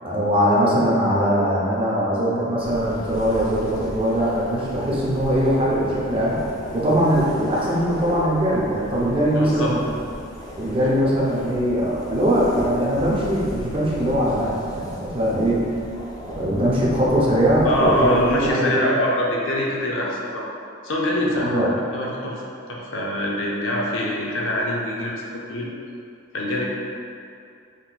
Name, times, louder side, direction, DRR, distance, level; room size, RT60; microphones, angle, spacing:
voice 1, 0.0-6.4 6.7-10.0 10.5-15.8 16.4-18.9 21.4-21.7, equal, 25° right, -6 dB, 0.6 m, -21 dB
sound 1, 2.6-18.5, left 1 dB, 20° left, 0.3 m, -36 dB
voice 2, 9.3-9.7 17.6-20.5 20.8-25.7 26.3-26.6, left 1 dB, 70° left, -3 dB, 0.6 m, -24 dB
3.9 x 2.9 x 2.2 m, 2.5 s
head